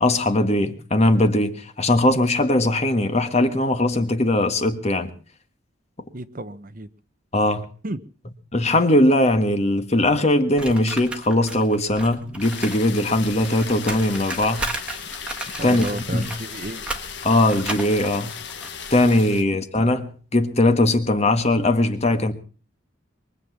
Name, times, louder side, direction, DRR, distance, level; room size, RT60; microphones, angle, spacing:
voice 1, 0.0-5.1 7.3-7.6 8.5-14.7 15.6-16.3 17.2-18.3 18.9-22.3, left 1 dB, 30° left, 1.6 m, -20 dB
voice 2, 6.1-6.9 7.8-8.0 15.5-16.8 19.3-19.4, right 2 dB, 40° right, 1.0 m, -32 dB
sound 1, 10.6-12.8 13.1-19.2, right 2 dB, 5° right, 1.7 m, -34 dB
sound 2, 12.4-19.4, left 7 dB, 60° left, 1.7 m, -36 dB
23.0 x 8.1 x 7.2 m
head